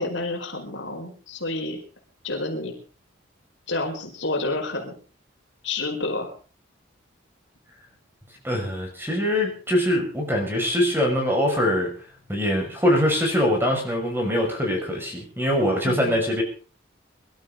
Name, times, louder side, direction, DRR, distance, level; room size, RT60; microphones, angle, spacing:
voice 1, 0.0-1.8 2.2-2.7 3.7-4.9 5.6-6.3 15.8-16.2, left 2 dB, 65° left, 2 dB, 4.9 m, -29 dB
voice 2, 8.4-11.9 12.3-16.4, equal, 10° right, 1 dB, 5.9 m, -23 dB
24.5 x 13.0 x 3.9 m, 0.39 s
head